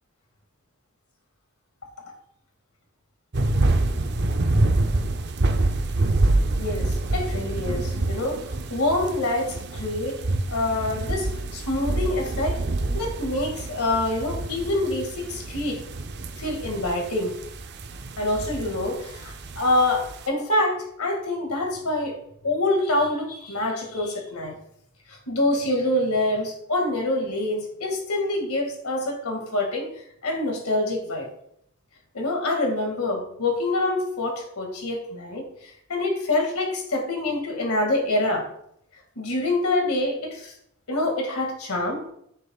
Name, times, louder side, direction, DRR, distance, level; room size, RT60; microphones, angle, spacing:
sound 1, 3.3-20.3, right 2 dB, 50° right, 0.6 m, -27 dB
voice 1, 6.6-8.4 8.7-10.2 10.5-11.3 11.5-12.6 12.9-15.8 16.4-17.3 18.2-22.1 22.4-24.5 25.3-29.9 30.2-31.3 32.1-38.5 39.2-40.5 40.9-42.0, left 2 dB, 85° left, 1 dB, 2.1 m, -26 dB
15.0 x 6.7 x 2.4 m, 0.71 s
head